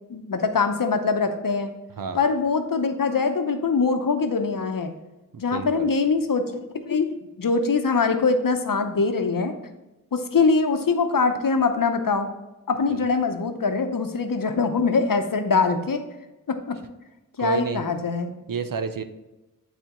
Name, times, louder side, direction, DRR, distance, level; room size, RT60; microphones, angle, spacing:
voice 1, 0.1-1.7 2.1-4.9 5.4-9.6 10.1-12.3 12.7-16.1 16.5-16.8 17.4-18.3, left 4 dB, 70° left, 7 dB, 0.8 m, -23 dB
voice 2, 5.5-5.9 12.9-13.0 17.4-17.8 18.5-19.0, right 5 dB, 70° right, 9 dB, 0.7 m, -29 dB
10.0 x 4.2 x 3.0 m, 1.0 s
wide cardioid pair, 60°, 34 cm